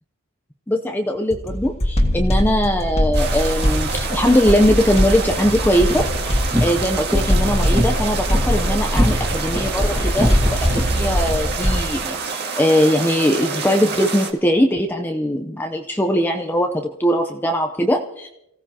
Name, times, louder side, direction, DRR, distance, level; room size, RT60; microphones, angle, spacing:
voice 1, 0.7-6.1 6.6-18.3, equal, 10° left, 3 dB, 0.7 m, -20 dB
sound 1, 1.3-12.0, equal, 30° left, 1.8 m, -22 dB
sound 2, 3.1-14.3, right 5 dB, 50° right, 1.9 m, -28 dB
sound 3, 5.4-10.9, equal, 10° right, 1.9 m, -26 dB
27.5 x 16.0 x 2.9 m, 0.85 s
head